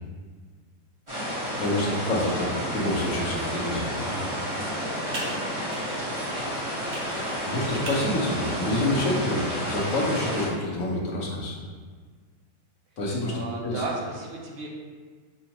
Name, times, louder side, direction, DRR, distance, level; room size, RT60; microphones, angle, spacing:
sound 1, 1.1-10.5, equal, 20° right, 1.2 m, -31 dB
voice 1, 1.6-4.2 7.1-11.5 13.0-13.8, left 1 dB, 60° left, -3 dB, 1.2 m, -28 dB
voice 2, 2.7-3.7 4.9-5.1 13.3-14.7, right 3 dB, 65° right, -2 dB, 0.6 m, -36 dB
Computer keyboard, 3.7-10.5, right 1 dB, 85° right, 1.6 m, -43 dB
6.9 x 2.4 x 2.9 m, 1.5 s
omnidirectional pair, 1.8 m